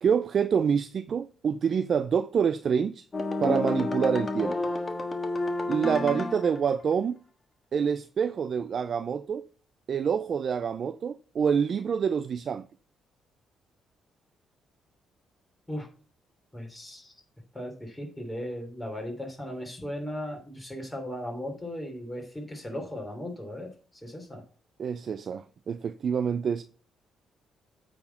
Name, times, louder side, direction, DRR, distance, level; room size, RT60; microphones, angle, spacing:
voice 1, 0.0-3.0 3.4-4.6 5.7-7.2 7.7-9.5 9.9-12.7 24.8-26.6, right 7 dB, 55° right, 0.4 m, -27 dB
sound 1, 3.1-6.6, left 2 dB, 30° left, 1.4 m, -30 dB
voice 2, 16.5-17.1 17.5-23.7 24.0-24.4, left 1 dB, 10° left, 3.2 m, -37 dB
8.7 x 4.3 x 5.6 m
cardioid pair, 90°, 0 cm